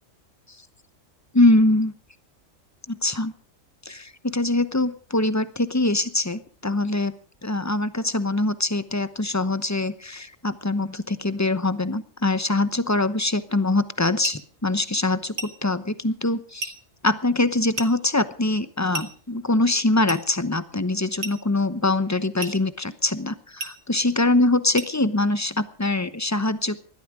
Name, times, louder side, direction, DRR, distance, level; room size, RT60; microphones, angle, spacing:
voice 1, 1.3-1.9 2.9-3.3 3.8-7.1 7.4-16.7 17.0-26.8, left 2 dB, 15° left, 13 dB, 0.8 m, -23 dB
sound 1, 14.2-14.5 15.4-15.6 16.6-16.8 17.8-18.0 18.9-19.2 20.1-20.3 21.2-21.5 22.4-22.6 23.6-23.8 24.8-25.0, right 3 dB, 80° right, 2.2 m, -33 dB
20.0 x 13.5 x 4.9 m, 0.42 s
omnidirectional pair, 1.3 m